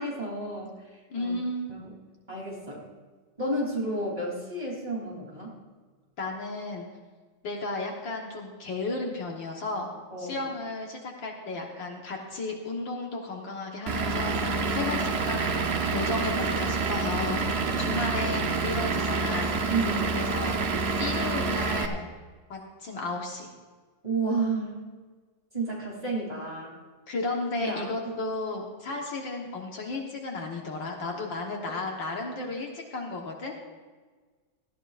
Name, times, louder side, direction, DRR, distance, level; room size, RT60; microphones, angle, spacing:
voice 1, 0.0-1.3 1.7-1.9 2.3-2.8 3.4-5.6 10.1-10.5 17.6-17.9 19.7-20.2 24.0-24.8 25.5-26.7 27.6-28.1, right 2 dB, 20° right, -3 dB, 3.3 m, -31 dB
voice 2, 1.1-1.7 6.2-6.8 7.4-9.9 10.2-17.4 17.8-19.5 20.1-22.1 22.5-23.5 27.1-33.5, left 2 dB, 65° left, 0 dB, 2.0 m, -34 dB
Vehicle / Engine, 13.9-21.9, right 4 dB, 70° right, 0.6 m, -27 dB
18.5 x 14.0 x 2.5 m, 1.4 s
omnidirectional pair, 2.3 m